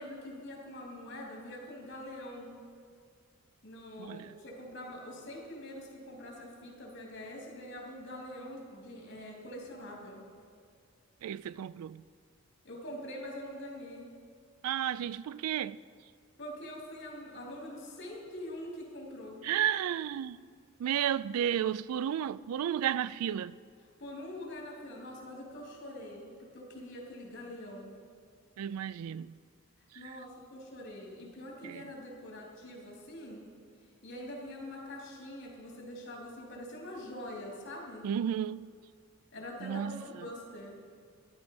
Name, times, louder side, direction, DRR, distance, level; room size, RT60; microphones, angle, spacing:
voice 1, 0.0-2.6 3.6-10.3 12.6-14.1 16.4-19.4 24.0-27.9 29.9-33.5 34.0-38.1 39.3-40.8, left 1 dB, 55° left, 3.2 m, -44 dB
voice 2, 4.0-4.3 11.2-12.0 14.6-15.8 19.4-20.4 20.8-23.5 28.6-29.3 31.6-31.8 38.0-38.7 39.6-40.1, right 9 dB, 85° right, 0.3 m, -32 dB
13.0 x 11.0 x 5.3 m
head